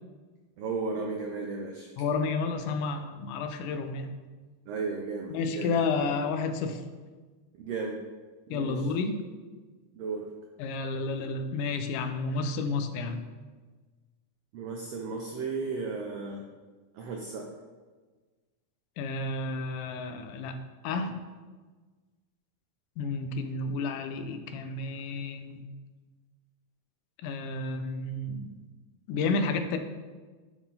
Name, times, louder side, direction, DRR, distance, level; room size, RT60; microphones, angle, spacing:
voice 1, 0.6-1.9 4.7-6.1 7.6-8.0 8.5-8.9 9.9-10.3 14.5-16.4 16.9-17.5, right 4 dB, 90° right, 0 dB, 1.4 m, -35 dB
voice 2, 2.0-4.1 5.3-6.8 8.5-9.2 10.6-13.3 19.0-20.6 20.8-21.2 23.0-25.6 27.2-28.5 29.1-29.8, left 3 dB, 90° left, 8 dB, 2.2 m, -31 dB
10.5 x 3.8 x 4.1 m, 1.4 s
omnidirectional pair, 3.6 m